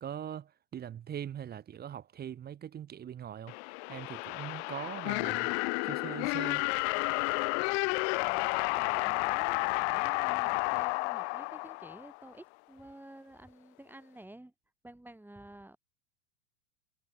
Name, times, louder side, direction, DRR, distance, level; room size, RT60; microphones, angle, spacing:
voice 1, 0.0-3.5 3.9-5.5 5.8-6.6, right 9 dB, 25° right, 1.0 m, -41 dB
sound 1, 3.5-12.3, left 31 dB, 55° left, 0.8 m, -31 dB
voice 2, 8.1-8.5 8.8-14.5 14.8-15.8, right 1 dB, 5° right, 7.9 m, -51 dB
hypercardioid pair, 95°, 41 cm